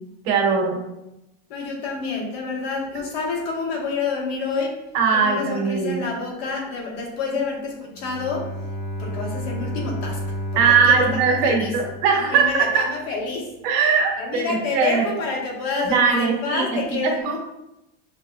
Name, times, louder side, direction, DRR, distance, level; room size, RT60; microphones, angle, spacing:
voice 1, 0.2-0.8 4.9-6.0 10.5-12.8 13.6-15.0 15.9-16.6 17.0-17.4, right 5 dB, 60° right, 1 dB, 1.1 m, -20 dB
voice 2, 1.5-4.8 5.1-8.5 9.0-11.7 12.3-13.5 14.2-17.4, left 4 dB, 80° left, -1 dB, 1.4 m, -28 dB
Bowed string instrument, 7.9-12.7, equal, 40° left, 0.9 m, -31 dB
5.8 x 3.0 x 2.3 m, 0.89 s
supercardioid pair, 160°, 30 cm